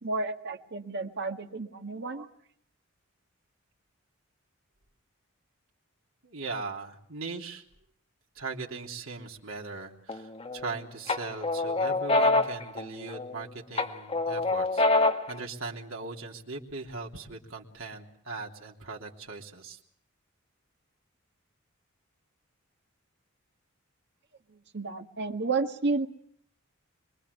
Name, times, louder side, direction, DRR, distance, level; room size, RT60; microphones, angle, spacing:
voice 1, 0.0-2.3 24.7-26.1, right 3 dB, 55° right, 4 dB, 2.0 m, -31 dB
voice 2, 6.2-7.6 8.3-19.8, right 3 dB, 70° right, 0 dB, 3.3 m, -39 dB
sound 1, 10.1-10.7 11.1-13.4 13.8-15.4, left 2 dB, 30° left, 1.6 m, -26 dB
25.0 x 22.5 x 8.3 m, 0.66 s
head